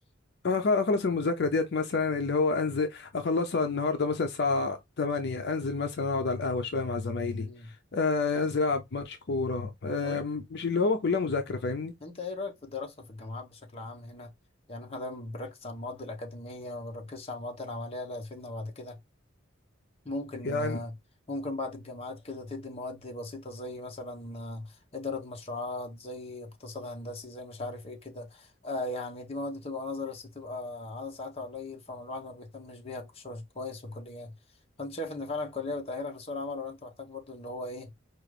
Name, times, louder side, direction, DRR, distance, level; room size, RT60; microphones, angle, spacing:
voice 1, 0.4-7.5 7.9-11.9 20.4-20.8, left 4 dB, 60° left, 0.5 m, -28 dB
voice 2, 7.4-7.7 10.0-10.3 12.0-14.3 14.7-19.0 20.0-21.0 21.3-34.3 34.8-37.9, left 2 dB, 30° left, 0.8 m, -38 dB
4.8 x 2.4 x 3.2 m
head